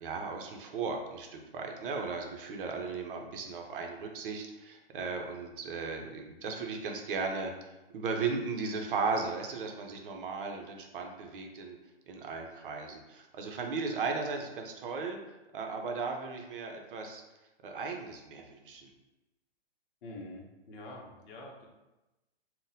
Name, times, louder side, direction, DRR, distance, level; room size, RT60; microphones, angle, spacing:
voice 1, 0.0-7.5 7.9-11.8 12.1-15.2 15.5-17.2 17.6-18.9, right 4 dB, 55° right, 3 dB, 0.6 m, -36 dB
voice 2, 20.0-21.7, left 1 dB, 55° left, -1 dB, 0.7 m, -46 dB
3.8 x 2.1 x 2.7 m, 1.0 s
hypercardioid pair, 145°, 32 cm